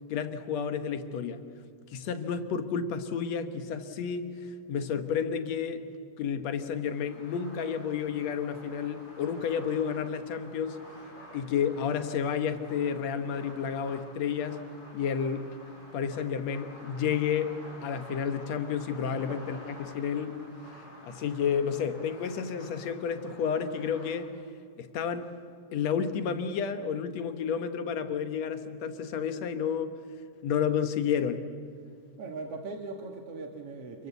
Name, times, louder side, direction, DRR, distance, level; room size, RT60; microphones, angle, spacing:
voice 1, 0.1-1.4 1.9-4.3 4.7-5.8 6.2-10.8 11.3-14.7 14.9-15.5 15.9-20.4 21.0-24.3 24.8-25.3 25.7-29.9 30.4-31.4, left 7 dB, 65° left, 9 dB, 2.3 m, -31 dB
sound 1, 6.7-24.3, left 1 dB, 50° left, 8.6 m, -50 dB
voice 2, 32.2-34.1, right 3 dB, 55° right, 3 dB, 2.4 m, -40 dB
28.0 x 21.5 x 8.2 m, 2.3 s
omnidirectional pair, 3.3 m